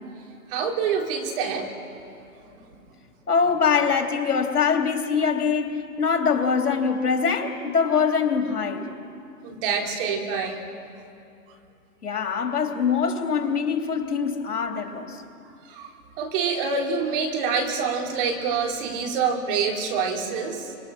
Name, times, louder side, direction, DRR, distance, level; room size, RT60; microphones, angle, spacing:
voice 1, 0.5-1.7 9.4-10.6 15.7-15.9 16.2-20.8, right 5 dB, 35° right, 2 dB, 3.2 m, -26 dB
voice 2, 3.3-8.8 12.0-15.2, left 6 dB, 80° left, 3 dB, 3.1 m, -23 dB
25.5 x 24.5 x 6.2 m, 2.6 s
hypercardioid pair, 135°, 45 cm